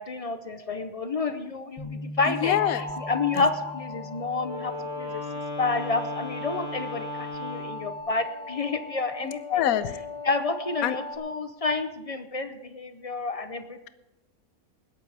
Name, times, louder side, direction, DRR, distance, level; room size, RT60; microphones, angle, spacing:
voice 1, 0.0-5.2 5.6-9.6 10.2-13.9, left 3 dB, 50° left, 9 dB, 0.4 m, -30 dB
Bass guitar, 1.8-8.0, left 1 dB, 15° left, 2.4 m, -43 dB
voice 2, 2.3-2.9 3.3-3.4 9.2-9.9 10.8-11.0, left 11 dB, 75° left, 13 dB, 1.1 m, -25 dB
sound 1, 2.4-11.2, left 3 dB, 35° left, 3.7 m, -39 dB
Wind instrument woodwind instrument, 4.4-7.9, left 1 dB, 15° right, 6.2 m, -37 dB
20.0 x 12.0 x 3.4 m, 0.98 s
omnidirectional pair, 1.6 m